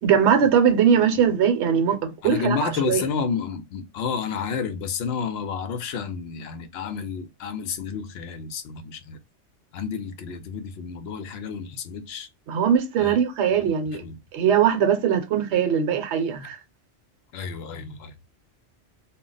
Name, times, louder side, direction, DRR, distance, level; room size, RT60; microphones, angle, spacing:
voice 1, 0.0-3.0 12.5-14.0 14.3-16.6, right 8 dB, 70° right, 0.9 m, -21 dB
voice 2, 2.2-9.2 9.7-12.3 13.0-13.2 14.0-14.2 17.3-18.1, left 6 dB, 65° left, 0.7 m, -30 dB
2.2 x 2.0 x 3.7 m
omnidirectional pair, 1.3 m